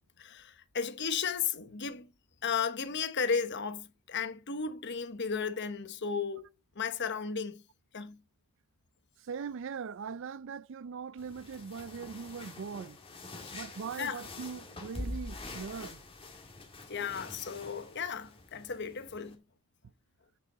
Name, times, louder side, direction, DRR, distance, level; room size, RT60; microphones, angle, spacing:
voice 1, 0.2-2.1 2.4-6.5 6.8-7.6 7.9-8.2 13.4-13.6 14.0-14.2 16.9-19.4, left 6 dB, 50° left, 1.0 m, -34 dB
voice 2, 9.2-13.0 13.5-16.0, right 6 dB, 60° right, 0.4 m, -41 dB
sound 1, 11.2-19.4, left 2 dB, 25° left, 1.9 m, -45 dB
8.5 x 6.8 x 3.8 m
head